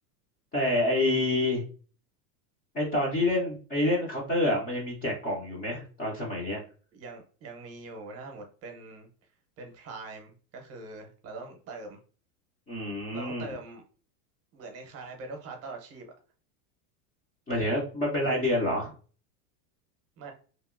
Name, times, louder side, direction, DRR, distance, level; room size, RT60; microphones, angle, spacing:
voice 1, 0.5-1.6 2.7-6.6 12.7-13.5 17.5-18.9, left 1 dB, 20° left, -3 dB, 0.5 m, -27 dB
voice 2, 6.9-9.3 9.6-12.0 13.1-13.8 14.5-16.1 20.2-20.3, right 3 dB, 30° right, 3 dB, 0.7 m, -43 dB
2.9 x 2.7 x 2.4 m, 0.39 s
supercardioid pair, 140°, 48 cm